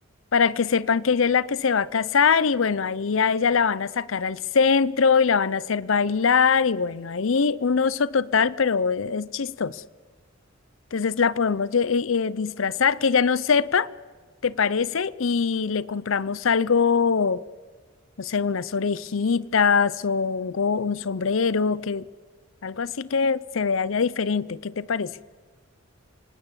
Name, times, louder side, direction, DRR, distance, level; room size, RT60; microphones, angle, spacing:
voice 1, 0.3-9.8 10.9-13.9 14.4-17.4 18.2-22.1 22.6-25.1, left 5 dB, 70° left, 0.6 m, -23 dB
27.0 x 18.5 x 7.4 m
head